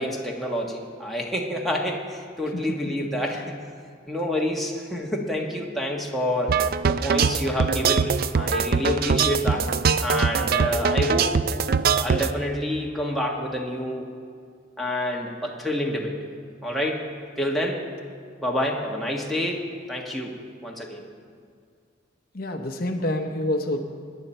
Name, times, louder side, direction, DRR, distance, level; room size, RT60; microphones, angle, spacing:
voice 1, 0.0-3.6 4.1-9.7 10.0-11.3 12.0-14.1 14.8-16.3 16.6-17.8 18.4-19.6 19.9-21.0, equal, ahead, -2 dB, 1.3 m, -28 dB
voice 2, 2.5-2.9 3.3-3.4 22.3-23.8, left 1 dB, 50° left, 4 dB, 0.8 m, -28 dB
sound 1, 6.5-12.3, right 5 dB, 50° right, 0.4 m, -22 dB
21.5 x 10.0 x 4.4 m, 2.1 s
head